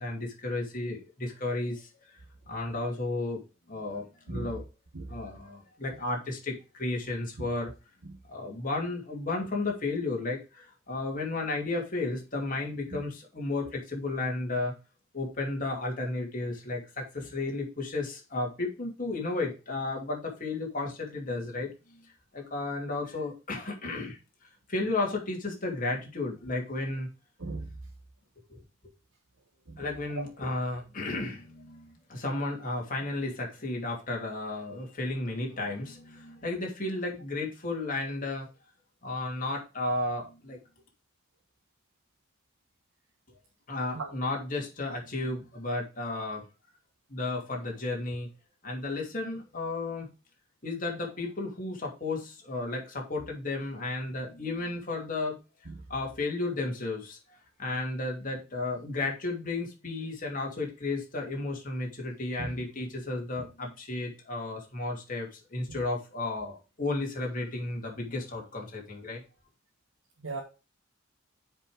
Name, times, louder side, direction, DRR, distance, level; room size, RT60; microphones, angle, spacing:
voice 1, 0.0-1.9 2.5-3.4 3.7-4.6 5.1-7.7 8.3-14.7 15.1-21.7 22.3-24.2 24.7-27.1 28.5-28.6 29.8-38.5 39.0-40.6 43.7-46.4 47.1-48.3 48.6-50.1 50.6-55.4 55.9-57.2 57.6-69.2, left 2 dB, 40° left, 0 dB, 2.9 m, -33 dB
voice 2, 4.3-4.6 4.9-5.1 7.4-7.5 8.0-8.2 12.9-13.0 27.4-27.7 29.7-29.8 30.1-30.2 43.9-44.2 55.6-55.8 62.4-62.5 65.7-65.8 70.2-70.4, right 3 dB, 80° right, 0 dB, 1.5 m, -37 dB
7.3 x 5.4 x 5.1 m, 0.30 s
head